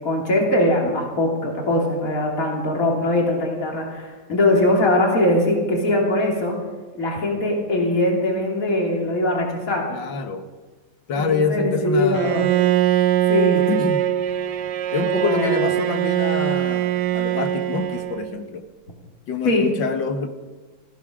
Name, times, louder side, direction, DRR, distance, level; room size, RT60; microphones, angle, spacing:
voice 1, 0.0-6.6 7.0-9.9 11.1-12.5 13.3-13.6 15.0-15.7 19.4-19.7, left 1 dB, 45° left, 0 dB, 3.2 m, -21 dB
voice 2, 9.9-10.5 11.1-12.5 13.7-14.0 14.9-18.6 19.3-20.3, left 5 dB, 80° left, 7 dB, 1.9 m, -26 dB
Bowed string instrument, 12.1-18.4, right 12 dB, 70° right, 1.2 m, -22 dB
18.5 x 15.0 x 5.0 m, 1.3 s
omnidirectional pair, 2.0 m